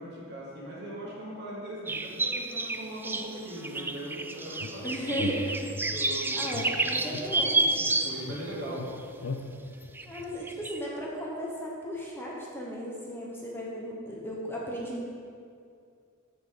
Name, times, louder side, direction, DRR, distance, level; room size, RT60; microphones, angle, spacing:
voice 1, 0.0-5.1 5.9-8.8, right 1 dB, 55° right, -6 dB, 2.6 m, -40 dB
sound 1, 1.9-8.5 9.0-9.1 9.9-10.2 10.5-10.8, right 3 dB, 10° right, 0.3 m, -30 dB
sound 2, 4.6-6.1 6.5-8.0 8.3-10.8, left 3 dB, 85° left, 0.6 m, -39 dB
voice 2, 4.8-5.6 6.3-7.7 10.0-15.0, equal, 10° left, -4 dB, 1.1 m, -35 dB
14.0 x 5.5 x 4.0 m, 2.3 s
head